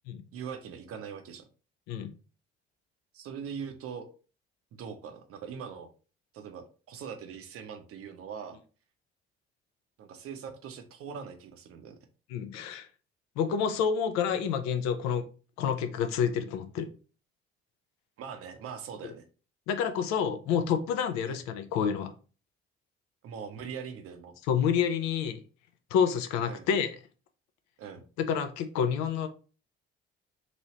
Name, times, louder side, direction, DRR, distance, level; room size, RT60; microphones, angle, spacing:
voice 1, 0.3-1.5 3.1-4.1 4.7-5.9 6.3-8.6 10.0-12.0 18.2-19.2 21.2-21.4 23.2-24.4 26.5-26.7 27.8-28.0, right 7 dB, 45° right, 0.7 m, -41 dB
voice 2, 12.3-12.9 13.4-15.2 15.6-16.9 19.0-19.1 19.7-22.1 24.5-25.4 25.9-27.0 28.3-29.3, left 7 dB, 60° left, 0.6 m, -28 dB
3.0 x 2.7 x 2.9 m
figure-of-eight pair, 45°, 32 cm